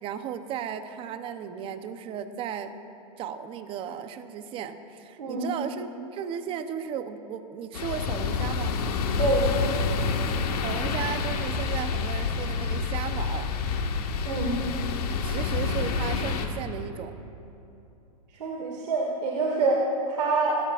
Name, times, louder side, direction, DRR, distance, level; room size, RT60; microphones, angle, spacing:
voice 1, 0.0-2.7 3.2-8.7 10.6-13.5 15.2-17.2, right 8 dB, 25° right, 10 dB, 0.8 m, -35 dB
sound 1, 7.7-16.5, left 5 dB, 70° left, 1.7 m, -28 dB
voice 2, 9.2-9.5 14.2-14.6 18.4-20.6, right 3 dB, 85° right, -2 dB, 2.2 m, -26 dB
27.5 x 16.5 x 2.5 m, 2.8 s
hypercardioid pair, 140°, 20 cm